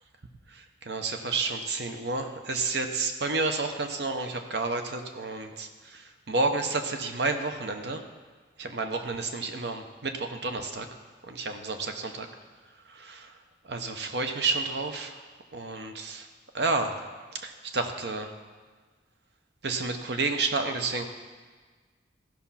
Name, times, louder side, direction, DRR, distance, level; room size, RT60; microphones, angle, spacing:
voice 1, 0.5-8.0 8.6-10.9 11.2-12.3 12.9-13.3 13.6-15.2 15.5-16.3 16.5-17.0 17.3-18.3 19.6-21.0, right 3 dB, 75° right, 6 dB, 0.9 m, -30 dB
14.5 x 5.8 x 5.7 m, 1.4 s
head